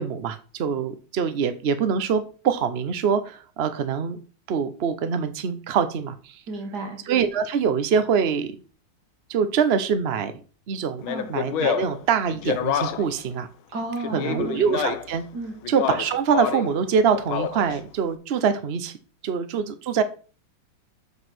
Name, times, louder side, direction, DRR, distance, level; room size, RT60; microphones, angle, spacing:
voice 1, 0.0-4.2 4.5-6.4 7.1-8.5 9.3-10.3 10.7-13.5 14.1-15.2 15.7-19.0 19.2-20.0, right 6 dB, 85° right, 11 dB, 0.5 m, -24 dB
voice 2, 6.5-7.0 11.1-11.3 13.7-14.6 15.3-15.5, right 2 dB, 50° right, 3 dB, 2.4 m, -32 dB
Speech, 11.0-13.2 14.0-15.2 15.6-16.7 17.1-17.8, left 9 dB, 80° left, 1.6 m, -28 dB
7.5 x 5.5 x 5.9 m, 0.37 s
omnidirectional pair, 2.3 m